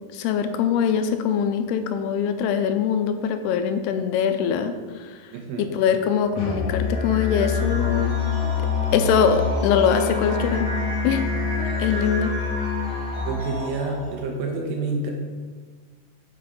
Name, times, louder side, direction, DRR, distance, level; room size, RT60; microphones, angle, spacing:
voice 1, 0.1-5.2 5.6-8.2 8.4-8.5 8.9-10.7 11.0-11.2 11.6-12.4, left 7 dB, 85° left, 8 dB, 2.5 m, -23 dB
voice 2, 5.3-5.7 13.2-15.1, right 3 dB, 75° right, 2 dB, 2.5 m, -28 dB
Musical instrument, 6.4-13.4, left 5 dB, 60° left, 2.2 m, -26 dB
sound 1, 6.7-14.3, right 1 dB, 45° left, 1.8 m, -34 dB
7.6 x 5.5 x 5.3 m, 1.5 s
omnidirectional pair, 4.6 m